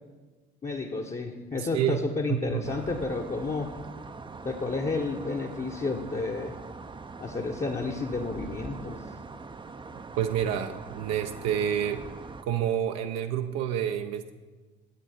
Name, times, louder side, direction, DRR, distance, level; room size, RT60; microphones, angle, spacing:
voice 1, 0.6-3.7 4.4-6.5 7.2-9.0, left 3 dB, 25° left, 1 dB, 1.0 m, -31 dB
voice 2, 1.6-2.0 2.3-2.7 10.2-12.1 12.4-14.3, right 9 dB, 60° right, 7 dB, 0.6 m, -28 dB
sound 1, 2.7-12.4, right 4 dB, 15° right, 0.6 m, -43 dB
11.5 x 7.8 x 4.3 m, 1.3 s
figure-of-eight pair, 50°, 29 cm